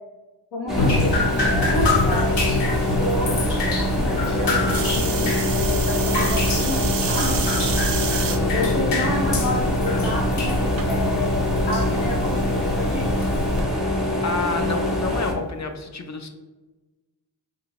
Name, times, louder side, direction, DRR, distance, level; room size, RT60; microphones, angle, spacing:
voice 1, 0.5-3.3 3.9-7.4 8.5-13.3, left 1 dB, 90° left, -2 dB, 0.9 m, -30 dB
sound 1, 0.7-15.3, left 1 dB, ahead, 0.6 m, -25 dB
Drip, 0.8-13.6, left 2 dB, 65° left, 0.9 m, -25 dB
sound 2, 4.7-8.4 9.0-9.5 10.8-10.9, right 7 dB, 50° right, 0.5 m, -29 dB
voice 2, 8.3-8.7 9.0-9.1 9.8-10.1 13.7-16.3, left 3 dB, 40° left, 6 dB, 0.4 m, -30 dB
4.0 x 2.7 x 3.0 m, 1.2 s
wide cardioid pair, 100°, 44 cm